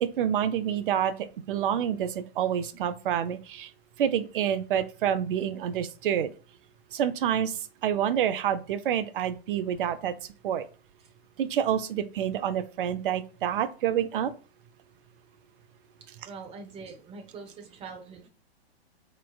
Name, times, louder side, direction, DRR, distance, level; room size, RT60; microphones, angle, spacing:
voice 1, 0.0-3.7 4.0-6.3 6.9-7.6 7.8-10.1 10.4-10.6 11.4-14.3, right 9 dB, 55° right, 0.6 m, -28 dB
voice 2, 16.3-18.3, right 4 dB, 20° right, 0.9 m, -43 dB
4.3 x 3.3 x 2.3 m
hypercardioid pair, 120°, 31 cm